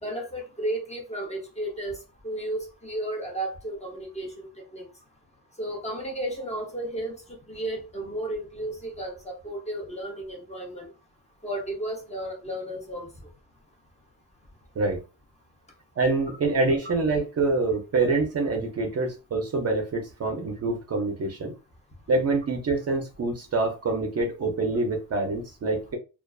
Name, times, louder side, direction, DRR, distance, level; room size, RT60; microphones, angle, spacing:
voice 1, 0.0-2.0 2.2-4.9 5.6-10.9 11.4-13.1, right 1 dB, 15° left, -1 dB, 0.7 m, -33 dB
voice 2, 16.0-21.5 22.1-26.0, right 3 dB, 40° right, 3 dB, 0.5 m, -26 dB
2.3 x 2.3 x 2.3 m, 0.30 s
wide cardioid pair, 145°, 39 cm